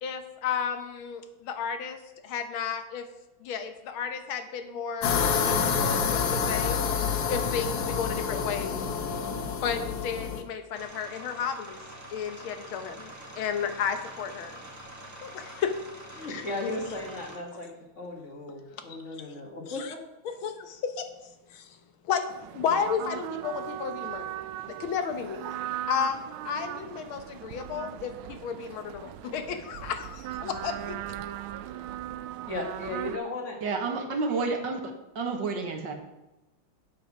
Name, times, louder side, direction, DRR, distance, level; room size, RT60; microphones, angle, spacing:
voice 1, 0.0-3.1 3.4-8.8 9.6-11.8 12.1-14.6 15.2-15.7 16.3-16.4 19.7-19.9 20.2-21.1 21.5-21.8 22.0-22.3 22.5-25.6 25.9-31.0, left 7 dB, 85° left, 8 dB, 1.8 m, -33 dB
sound 1, 5.0-10.4, left 6 dB, 60° left, 1.3 m, -28 dB
sound 2, 10.7-17.4, right 1 dB, 10° right, 1.3 m, -45 dB
voice 2, 16.2-20.0 32.4-33.6, left 2 dB, 40° left, 1 dB, 1.9 m, -36 dB
sound 3, 22.3-33.2, right 13 dB, 90° right, 1.4 m, -38 dB
voice 3, 33.6-34.8 35.1-35.9, right 4 dB, 65° right, 4 dB, 1.8 m, -29 dB
8.2 x 8.0 x 6.0 m, 0.98 s
omnidirectional pair, 2.2 m